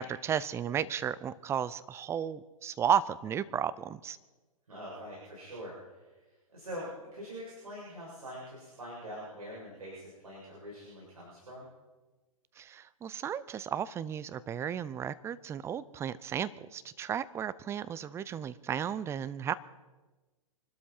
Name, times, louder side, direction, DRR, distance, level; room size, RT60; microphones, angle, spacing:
voice 1, 0.0-4.2 12.6-19.5, right 8 dB, 15° right, 16 dB, 0.6 m, -34 dB
voice 2, 4.7-6.0 6.5-11.7, equal, 80° right, -6 dB, 7.3 m, -44 dB
25.5 x 12.5 x 4.5 m, 1.2 s
figure-of-eight pair, 120°, 19 cm